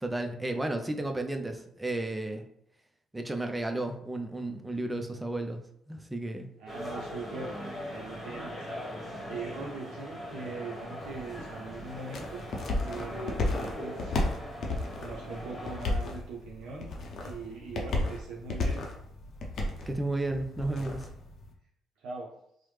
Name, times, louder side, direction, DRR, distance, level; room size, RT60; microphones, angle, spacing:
voice 1, 0.0-2.4 3.1-5.6 5.9-6.5 19.8-21.1, right 2 dB, 15° right, 5 dB, 0.4 m, -33 dB
voice 2, 6.6-7.6 7.9-8.7 9.3-12.5 12.8-14.2 15.0-16.9 17.2-18.9 22.0-22.3, right 4 dB, 75° right, -3 dB, 0.4 m, -41 dB
sound 1, 6.7-15.9, equal, 25° left, 1.2 m, -40 dB
sound 2, 11.0-21.5, left 2 dB, 60° left, 0.6 m, -34 dB
3.1 x 2.0 x 3.2 m, 0.72 s
supercardioid pair, 70°, 0 cm